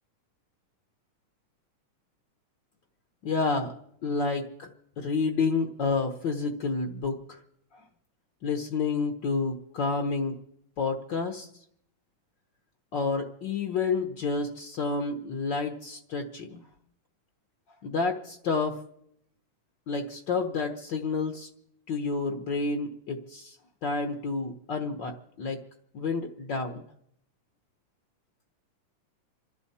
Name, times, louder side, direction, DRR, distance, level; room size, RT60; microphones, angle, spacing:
voice 1, 3.2-3.7 4.0-4.7 5.0-7.4 8.4-10.4 10.8-11.5 12.9-16.6 17.8-18.8 19.9-21.5 21.9-23.6 23.8-25.1 25.4-25.6 25.9-26.8, left 4 dB, 70° left, 4 dB, 1.0 m, -29 dB
27.5 x 12.5 x 4.2 m, 0.76 s
omnidirectional pair, 3.6 m